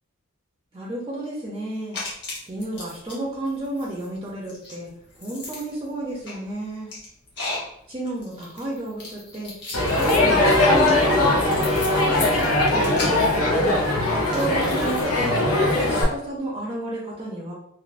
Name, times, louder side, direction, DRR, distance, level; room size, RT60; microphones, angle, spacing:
voice 1, 0.7-2.0 2.5-6.9 7.9-9.5 9.9-13.8 14.3-15.4 15.7-17.5, right 1 dB, 25° right, -5 dB, 0.5 m, -32 dB
sound 1, 1.9-3.2 3.4-15.0, left 2 dB, 55° left, 1.0 m, -36 dB
Crowd, 9.7-16.0, left 2 dB, 85° left, 0.6 m, -20 dB
3.1 x 2.0 x 2.5 m, 0.73 s
head